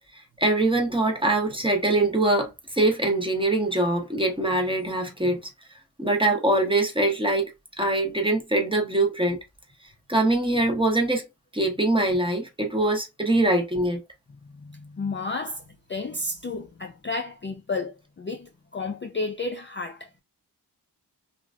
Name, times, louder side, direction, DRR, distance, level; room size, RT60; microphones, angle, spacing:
voice 1, 0.1-5.4 6.0-7.5 7.8-9.4 10.1-11.2 11.5-14.0, right 2 dB, 10° right, 0.8 m, -23 dB
voice 2, 14.5-15.6 15.9-20.1, left 3 dB, 30° left, 0.4 m, -32 dB
2.9 x 2.5 x 2.3 m
wide cardioid pair, 75°, 41 cm